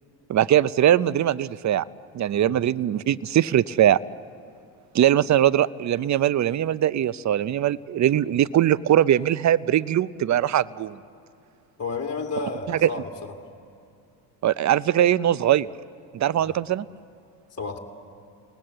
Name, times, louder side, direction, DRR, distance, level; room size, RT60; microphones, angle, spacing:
voice 1, 0.3-1.8 2.1-4.0 4.9-11.0 12.7-12.9 14.4-15.7 16.1-16.9, right 11 dB, 35° right, 19 dB, 0.6 m, -21 dB
voice 2, 11.8-13.3 16.4-16.6 17.6-17.8, left 4 dB, 30° left, 2 dB, 2.5 m, -32 dB
28.5 x 19.0 x 7.8 m, 2.5 s
supercardioid pair, 75°, 49 cm